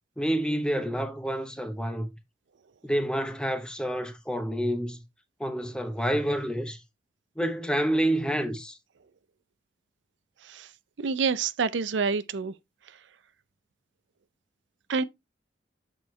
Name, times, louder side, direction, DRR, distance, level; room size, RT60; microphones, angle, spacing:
voice 1, 0.2-2.1 2.8-5.0 5.4-6.8 7.4-8.8, right 1 dB, 5° left, 0.8 m, -28 dB
voice 2, 11.0-12.5 14.9-15.0, right 5 dB, 85° right, 0.5 m, -27 dB
7.6 x 4.5 x 3.1 m
head